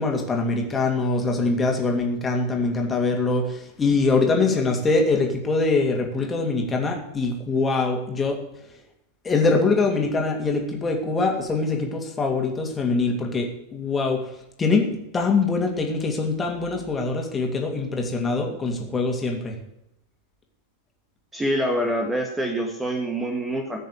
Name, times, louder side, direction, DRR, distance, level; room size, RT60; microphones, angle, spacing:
voice 1, 0.0-8.4 9.2-14.3 14.6-19.5, left 3 dB, 15° left, 1 dB, 2.9 m, -23 dB
voice 2, 21.3-23.8, right 1 dB, 10° right, 2 dB, 1.9 m, -25 dB
15.0 x 6.6 x 8.4 m, 0.85 s
figure-of-eight pair, 90°, 0 cm